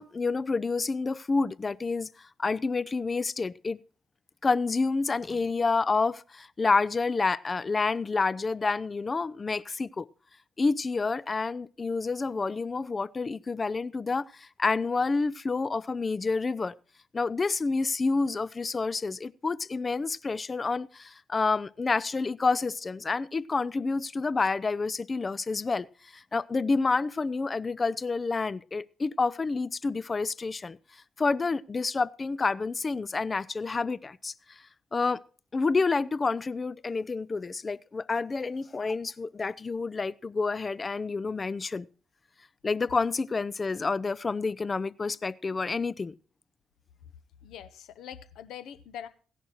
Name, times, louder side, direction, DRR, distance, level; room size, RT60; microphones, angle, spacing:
voice 1, 0.0-3.8 4.4-10.1 10.6-16.7 17.1-25.9 26.1-30.8 31.2-34.3 34.9-35.2 35.5-41.9 42.6-46.1, left 4 dB, 30° left, 0.5 m, -29 dB
voice 2, 47.4-49.1, left 9 dB, 65° left, 0.9 m, -43 dB
16.0 x 11.0 x 3.0 m
figure-of-eight pair, 40°, 0 cm